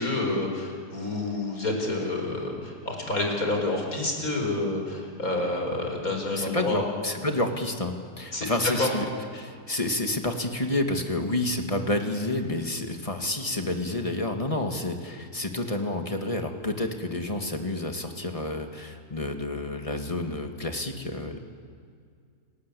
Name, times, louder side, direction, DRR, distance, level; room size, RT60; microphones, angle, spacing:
voice 1, 0.0-6.8 8.3-8.5 8.8-8.9, left 2 dB, 60° left, 2 dB, 5.1 m, -28 dB
voice 2, 6.3-9.1 9.3-21.4, left 1 dB, 20° left, 4 dB, 2.2 m, -29 dB
29.5 x 19.0 x 8.5 m, 2.2 s
omnidirectional pair, 1.7 m